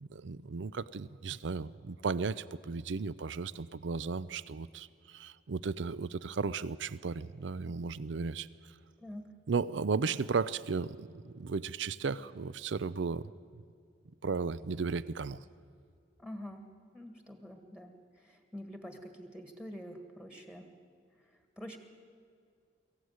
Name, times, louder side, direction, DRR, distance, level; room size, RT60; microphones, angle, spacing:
voice 1, 0.0-8.5 9.5-13.6 14.2-15.4, right 4 dB, 75° right, 18 dB, 0.5 m, -35 dB
voice 2, 16.2-16.6 16.9-20.7 21.6-21.8, equal, 5° right, 5 dB, 1.7 m, -46 dB
23.0 x 15.5 x 9.5 m, 2.3 s
head